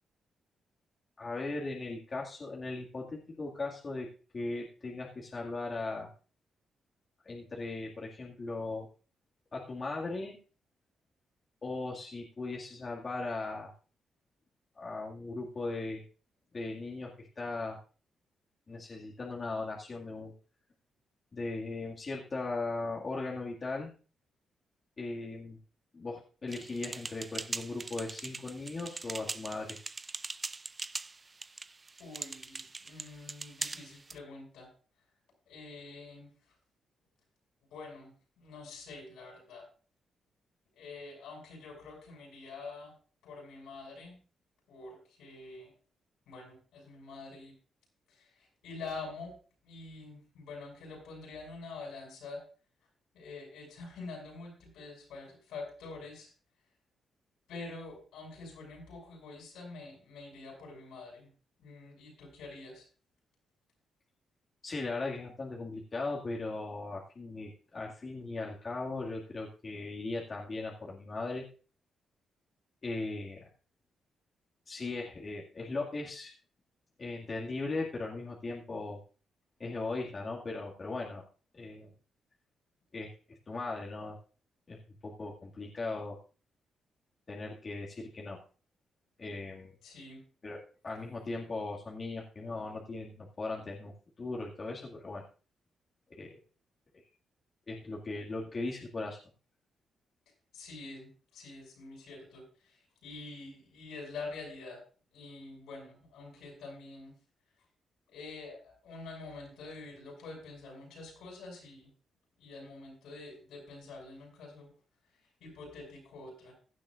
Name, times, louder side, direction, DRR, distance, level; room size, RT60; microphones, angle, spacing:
voice 1, 1.2-4.1 4.3-6.1 7.2-8.9 9.5-10.4 11.6-13.7 14.7-16.0 16.5-17.8 18.7-20.3 21.3-23.9 25.0-25.6 25.9-29.8 64.6-71.4 72.8-73.5 74.7-76.3 77.0-79.0 79.6-81.2 81.5-81.9 82.9-84.2 84.7-86.2 87.3-88.4 89.2-89.7 90.4-93.9 94.2-95.2 96.1-96.4 97.7-99.2, left 3 dB, 40° left, -2 dB, 2.1 m, -38 dB
sound 1, 26.5-34.2, right 3 dB, 30° right, 0.5 m, -41 dB
voice 2, 32.0-34.7 35.5-36.3 37.7-39.7 40.7-42.9 43.2-44.2 44.7-45.7 46.3-47.5 48.1-49.3 49.6-52.4 53.1-56.3 57.5-61.3 61.6-62.9 89.8-90.2 100.5-104.8 105.1-107.1 108.1-111.9 112.4-114.7 115.4-116.5, left 3 dB, 90° left, 0 dB, 7.0 m, -46 dB
16.5 x 10.5 x 2.5 m, 0.38 s
cardioid pair, 75°, 0 cm